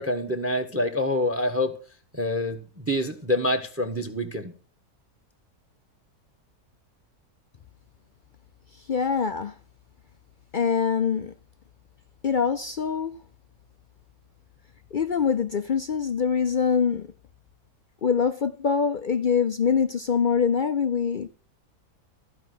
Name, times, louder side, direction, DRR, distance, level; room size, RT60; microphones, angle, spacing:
voice 1, 0.0-1.7 2.1-4.5, left 1 dB, 10° right, 1.0 m, -26 dB
voice 2, 8.9-9.6 10.5-11.3 12.2-13.1 14.9-17.1 18.0-21.3, left 6 dB, 65° left, 0.5 m, -24 dB
14.5 x 5.2 x 7.7 m
omnidirectional pair, 1.6 m